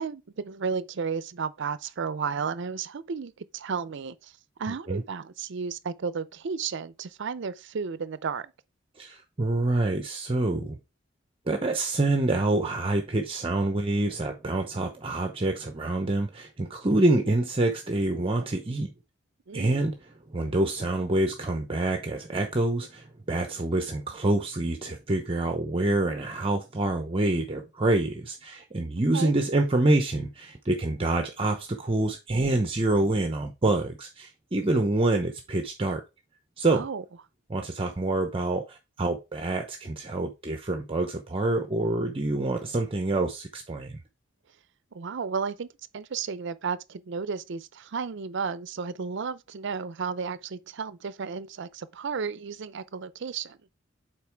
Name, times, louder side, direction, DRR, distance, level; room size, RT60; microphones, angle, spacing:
voice 1, 0.0-4.3 4.6-8.5 19.5-19.8 29.1-29.3 36.7-37.0 44.9-53.6, right 5 dB, 65° right, 0.5 m, -33 dB
voice 2, 9.0-10.7 11.5-18.9 19.5-19.9 20.3-36.0 36.6-36.8 37.5-44.0, right 2 dB, 30° right, 0.8 m, -26 dB
7.5 x 4.5 x 3.4 m
head